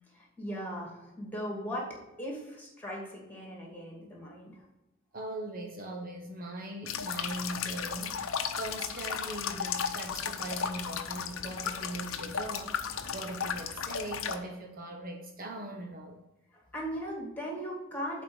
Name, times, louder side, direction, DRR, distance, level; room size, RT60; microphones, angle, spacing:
voice 1, 0.1-4.6 16.5-18.2, equal, 10° left, -2 dB, 2.4 m, -38 dB
voice 2, 5.1-8.2 8.6-12.7 13.1-16.2, right 1 dB, 45° right, 1 dB, 1.0 m, -40 dB
sound 1, 6.9-14.4, left 7 dB, 90° left, 0.7 m, -35 dB
7.5 x 4.5 x 6.2 m, 0.97 s
head